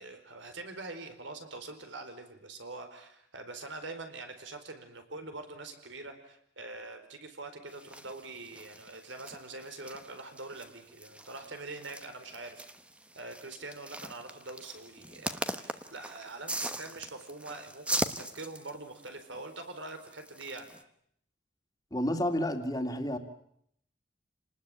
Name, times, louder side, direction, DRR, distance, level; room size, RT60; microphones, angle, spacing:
voice 1, 0.0-12.7 13.1-20.7, right 3 dB, 85° right, 7 dB, 4.4 m, -44 dB
sound 1, 7.7-20.8, right 1 dB, 5° right, 1.1 m, -41 dB
voice 2, 21.9-23.2, left 1 dB, 20° left, 5 dB, 2.4 m, -30 dB
28.5 x 19.5 x 9.0 m, 0.71 s
head